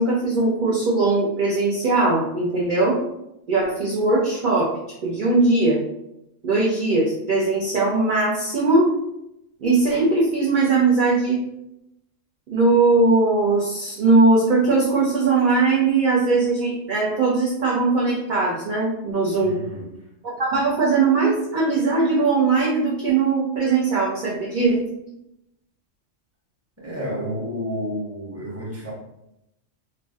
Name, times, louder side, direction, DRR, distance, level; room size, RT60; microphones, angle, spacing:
voice 1, 0.0-3.0 3.5-4.7 5.0-5.8 6.4-8.9 9.6-11.4 12.5-19.6 20.4-24.8, right 3 dB, 55° right, -5 dB, 0.6 m, -20 dB
voice 2, 19.4-19.9 26.8-28.9, equal, 15° right, -6 dB, 0.8 m, -30 dB
2.5 x 2.1 x 3.3 m, 0.84 s
omnidirectional pair, 1.3 m